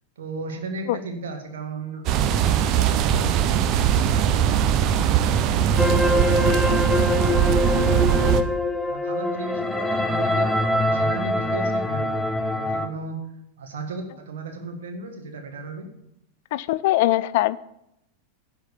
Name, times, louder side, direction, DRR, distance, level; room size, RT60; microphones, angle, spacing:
voice 1, 0.1-3.3 4.8-4.9 5.2-7.6 8.0-8.4 8.8-13.2 13.6-15.9, right 3 dB, 60° right, 4 dB, 1.7 m, -35 dB
sound 1, 2.1-8.4, right 9 dB, 35° right, 0.6 m, -20 dB
sound 2, 5.8-12.9, left 2 dB, 5° left, 0.7 m, -24 dB
voice 2, 16.5-17.6, left 16 dB, 50° left, 17 dB, 0.3 m, -21 dB
10.5 x 4.6 x 7.0 m, 0.81 s
figure-of-eight pair, 90°, 0 cm